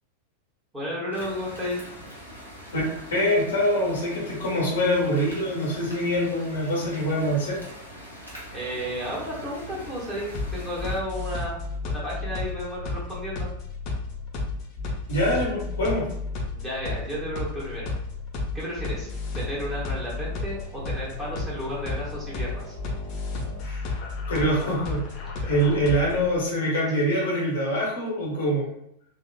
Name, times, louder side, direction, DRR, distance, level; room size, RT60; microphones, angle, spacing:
voice 1, 0.7-1.8 8.5-13.5 16.5-17.9 18.5-22.8 25.2-25.3, equal, 10° right, -7 dB, 1.4 m, -33 dB
sound 1, 1.1-11.0, equal, 90° left, 0.9 m, -43 dB
voice 2, 3.1-7.6 15.1-16.1 23.6-24.0 24.3-25.1 25.5-28.7, equal, 65° left, -3 dB, 1.1 m, -24 dB
sound 2, 10.3-26.3, left 3 dB, 40° left, 0.7 m, -32 dB
3.6 x 2.4 x 2.3 m, 0.77 s
figure-of-eight pair, 90°, 0 cm